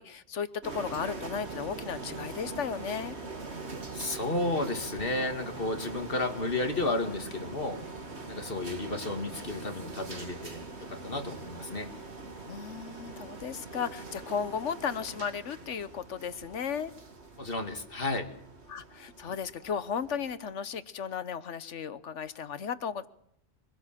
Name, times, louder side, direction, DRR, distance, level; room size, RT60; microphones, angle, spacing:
voice 1, 0.0-3.2 12.5-16.9 18.7-23.1, left 7 dB, 85° left, 14 dB, 1.3 m, -35 dB
sound 1, 0.6-20.3, right 3 dB, 70° right, 2.6 m, -43 dB
voice 2, 3.9-7.8 8.3-11.9 17.4-18.3, left 2 dB, 50° left, 5 dB, 2.4 m, -32 dB
24.0 x 16.5 x 7.4 m, 0.73 s
omnidirectional pair, 1.2 m